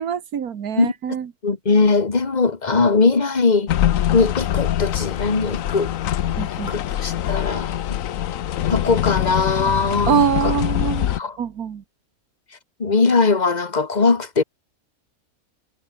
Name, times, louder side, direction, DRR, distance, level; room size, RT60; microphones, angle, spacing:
voice 1, 0.0-1.3 6.4-6.7 10.1-11.1 11.4-11.8, right 8 dB, 90° right, 1.8 m, -24 dB
voice 2, 1.4-3.7 4.1-5.9 6.7-8.0 8.7-10.5 11.1-11.3 12.8-14.4, left 4 dB, 30° left, 1.7 m, -20 dB
sound 1, 3.7-11.2, left 11 dB, 70° left, 1.1 m, -23 dB
omnidirectional pair, 1.5 m